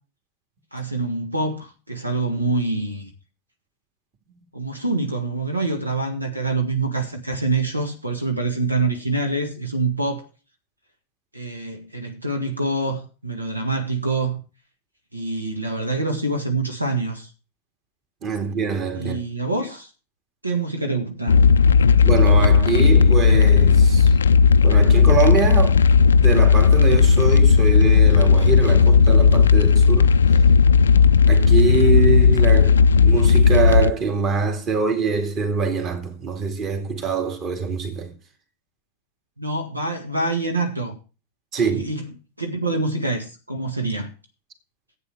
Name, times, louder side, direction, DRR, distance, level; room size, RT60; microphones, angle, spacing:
voice 1, 0.7-3.1 4.5-10.3 11.3-14.4 15.1-17.3 19.0-19.9 20.4-21.4 39.4-40.9 41.6-44.1, right 2 dB, 85° right, 1.6 m, -25 dB
voice 2, 18.2-19.2 22.0-24.1 24.6-25.8 26.2-30.1 31.3-38.1 41.5-41.9, right 5 dB, 35° right, 2.4 m, -24 dB
sound 1, 21.3-33.9, left 6 dB, 70° left, 0.4 m, -14 dB
11.5 x 8.5 x 4.6 m
figure-of-eight pair, 90°, 0 cm